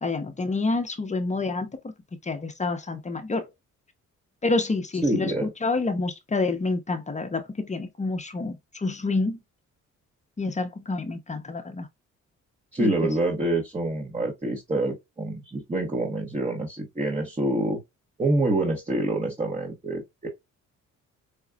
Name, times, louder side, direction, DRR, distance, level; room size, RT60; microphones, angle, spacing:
voice 1, 0.0-1.8 2.2-3.5 4.4-9.4 10.4-11.9 12.8-13.0, left 3 dB, 25° left, 0.8 m, -28 dB
voice 2, 5.0-5.5 12.7-17.8 18.2-20.3, right 2 dB, 20° right, 1.1 m, -26 dB
5.0 x 2.3 x 2.2 m
cardioid pair, 90°, 30 cm